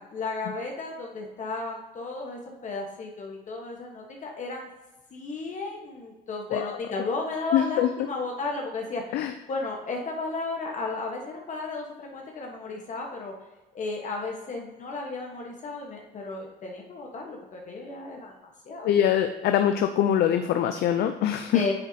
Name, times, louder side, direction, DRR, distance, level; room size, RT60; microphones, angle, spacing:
voice 1, 0.0-4.7 5.1-13.3 13.7-18.3 18.6-18.9 21.5-21.7, left 3 dB, 45° left, 0 dB, 1.3 m, -34 dB
voice 2, 7.5-7.9 9.1-9.3 18.8-21.6, left 10 dB, 70° left, 7 dB, 0.5 m, -23 dB
9.0 x 7.2 x 2.9 m, 1.1 s
cardioid pair, 110°, 17 cm